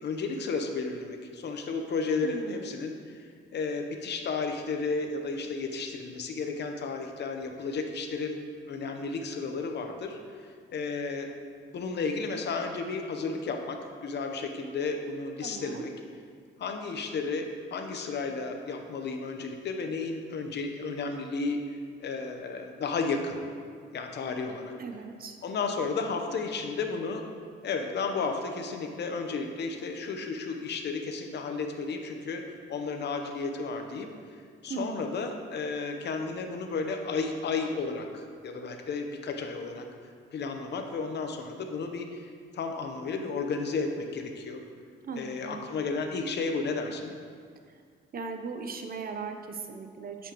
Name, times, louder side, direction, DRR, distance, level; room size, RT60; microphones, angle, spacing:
voice 1, 0.0-3.2 3.5-8.4 8.7-11.3 11.7-15.9 16.6-21.6 22.0-23.4 23.9-24.7 25.4-27.2 27.6-32.4 32.7-34.1 34.6-39.8 40.3-44.6 45.1-47.1, left 4 dB, 60° left, 4 dB, 0.9 m, -33 dB
voice 2, 2.2-2.6 15.4-15.8 24.8-25.4 34.7-35.0 45.0-45.6 48.1-50.3, right 5 dB, 50° right, 6 dB, 0.8 m, -38 dB
8.1 x 7.2 x 3.0 m, 2.1 s
cardioid pair, 90°, 20 cm